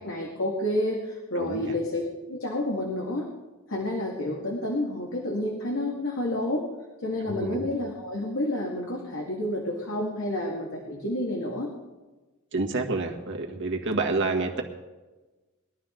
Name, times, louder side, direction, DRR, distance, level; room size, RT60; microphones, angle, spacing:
voice 1, 0.0-2.0 2.3-3.3 3.7-6.6 7.0-11.7, left 1 dB, 65° left, -1 dB, 2.0 m, -29 dB
voice 2, 1.3-1.7 7.3-7.6 12.5-14.6, right 3 dB, 60° right, 2 dB, 1.8 m, -28 dB
21.0 x 12.0 x 3.8 m, 1.2 s
head